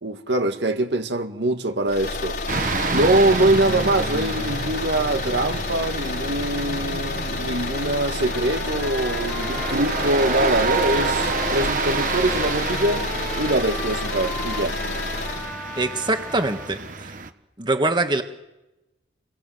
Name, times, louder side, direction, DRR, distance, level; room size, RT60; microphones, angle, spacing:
voice 1, 0.0-2.4 2.9-13.1 13.4-14.8, right 1 dB, 80° right, 1.9 m, -23 dB
sound 1, 1.9-15.5, left 3 dB, 65° left, 4.0 m, -29 dB
sound 2, 2.5-17.3, right 4 dB, 50° right, 1.4 m, -29 dB
Trumpet, 8.3-16.7, left 1 dB, 5° left, 2.4 m, -36 dB
voice 2, 15.8-17.1 17.6-18.2, right 2 dB, 25° right, 1.7 m, -23 dB
29.5 x 23.0 x 7.9 m
head